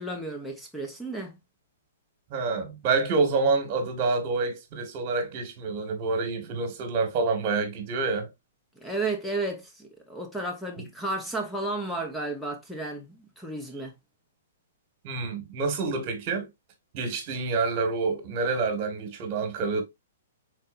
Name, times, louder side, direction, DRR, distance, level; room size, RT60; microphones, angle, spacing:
voice 1, 0.0-1.4 8.8-13.9, right 2 dB, 5° left, 1.0 m, -33 dB
voice 2, 2.3-8.3 10.8-10.9 15.0-16.5 16.9-19.8, right 4 dB, 40° right, 1.6 m, -27 dB
4.4 x 3.9 x 2.5 m
hypercardioid pair, 135°, 0 cm